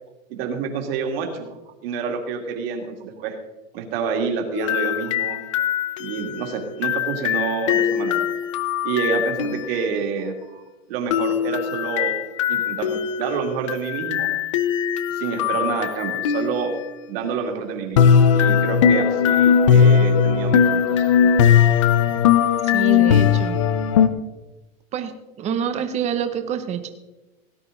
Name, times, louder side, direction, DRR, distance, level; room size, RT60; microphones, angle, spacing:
voice 1, 0.3-1.5 1.8-3.4 3.7-5.4 6.0-8.3 8.8-10.3 10.9-12.1 12.5-14.3 15.1-16.7 17.1-21.3, right 6 dB, 45° right, 3 dB, 2.6 m, -28 dB
sound 1, 4.6-9.8 11.1-16.9 18.0-24.1, left 7 dB, 25° left, 0.4 m, -19 dB
voice 2, 22.7-23.6 24.9-25.1 25.4-26.9, right 8 dB, 15° right, 8 dB, 0.8 m, -27 dB
17.5 x 10.0 x 4.0 m, 1.1 s
supercardioid pair, 165°, 41 cm